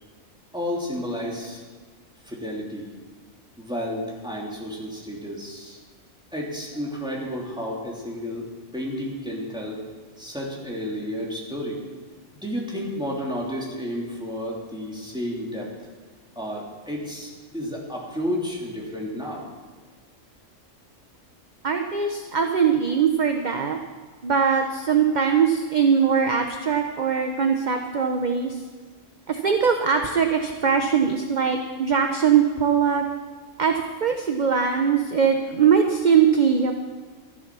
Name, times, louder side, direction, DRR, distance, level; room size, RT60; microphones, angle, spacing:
voice 1, 0.5-1.6 2.2-2.9 3.6-5.8 6.3-8.5 8.7-9.8 10.2-11.8 12.4-15.7 16.3-19.4, equal, 5° right, -4 dB, 3.2 m, -31 dB
voice 2, 21.6-23.8 24.2-28.6 29.3-33.0 33.6-36.7, right 6 dB, 40° right, 5 dB, 0.9 m, -21 dB
13.5 x 11.0 x 6.2 m, 1.5 s
omnidirectional pair, 1.3 m